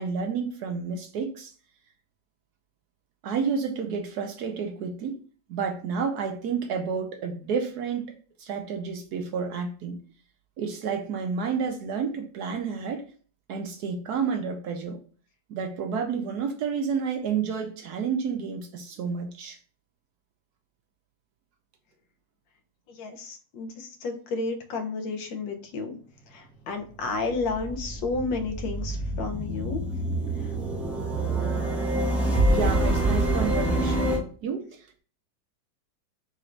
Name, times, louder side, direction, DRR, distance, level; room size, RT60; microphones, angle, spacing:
voice 1, 0.0-1.5 3.2-5.2 5.5-8.1 8.4-10.0 10.6-13.1 13.5-15.0 15.5-19.6 32.5-35.0, right 6 dB, 70° right, 4 dB, 1.1 m, -30 dB
voice 2, 22.9-26.0 26.3-29.8 30.4-30.5 33.4-33.5, left 3 dB, 90° left, 4 dB, 1.5 m, -32 dB
sound 1, 26.9-34.2, right 1 dB, ahead, 0.4 m, -26 dB
4.1 x 2.5 x 4.4 m, 0.41 s
omnidirectional pair, 2.0 m